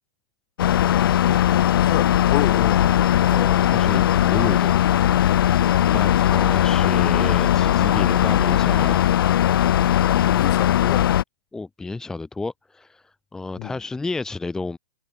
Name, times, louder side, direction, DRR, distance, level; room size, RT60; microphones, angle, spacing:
sound 1, 0.6-11.2, left 11 dB, 55° left, 0.6 m, -19 dB
voice 1, 1.8-2.9 10.2-11.1 13.6-13.7, left 23 dB, 25° left, 2.2 m, -29 dB
voice 2, 3.3-4.7 5.9-9.1 11.5-14.8, left 3 dB, 5° left, 1.1 m, -31 dB
hypercardioid pair, 170°, 14 cm